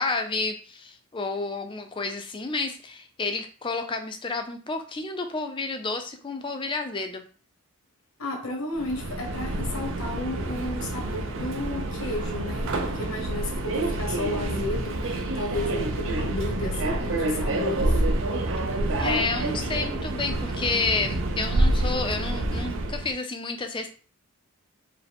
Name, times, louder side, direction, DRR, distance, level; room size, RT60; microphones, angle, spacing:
voice 1, 0.0-7.2 19.0-23.9, left 3 dB, 25° left, 0.4 m, -30 dB
voice 2, 8.2-18.0, left 2 dB, 75° left, 1.1 m, -33 dB
Subway metro underground, 8.7-23.1, right 2 dB, 60° right, 0.5 m, -28 dB
4.6 x 2.1 x 3.5 m
head